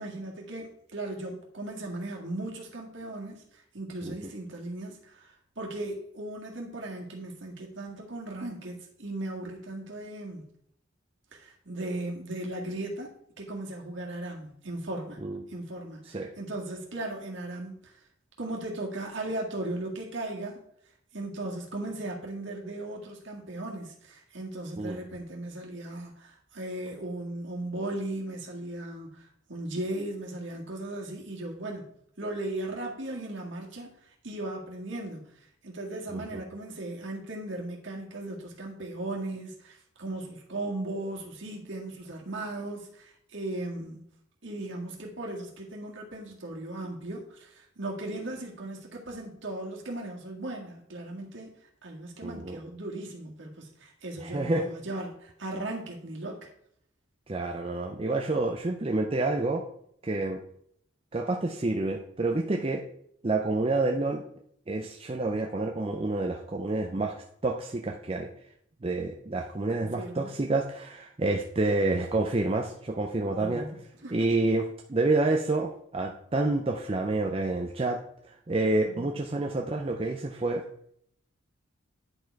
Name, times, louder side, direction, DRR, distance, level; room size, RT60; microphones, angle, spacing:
voice 1, 0.0-3.4 3.7-10.5 11.3-15.2 15.5-18.0 18.4-20.6 21.1-31.8 32.2-33.9 34.2-35.2 35.6-44.1 44.4-51.5 51.8-56.5 69.9-70.3 73.4-74.3 78.9-79.1, right 2 dB, 60° right, -1 dB, 1.9 m, -37 dB
voice 2, 52.2-52.6 54.2-54.7 57.3-59.6 60.0-60.4 61.1-62.8 63.2-64.2 64.7-67.1 67.4-68.3 68.8-73.7 74.1-80.7, right 2 dB, 25° right, 2 dB, 0.5 m, -28 dB
9.7 x 4.5 x 4.6 m, 0.68 s
head